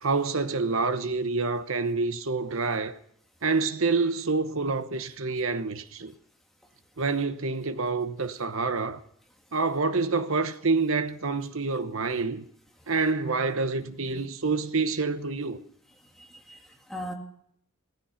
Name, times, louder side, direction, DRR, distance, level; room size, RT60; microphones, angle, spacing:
voice 1, 0.0-2.9 3.4-6.1 7.0-9.0 9.5-12.4 12.9-15.6, right 4 dB, 70° right, 1.0 m, -27 dB
voice 2, 16.2-17.1, equal, ahead, 2.0 m, -39 dB
16.5 x 14.5 x 5.8 m
head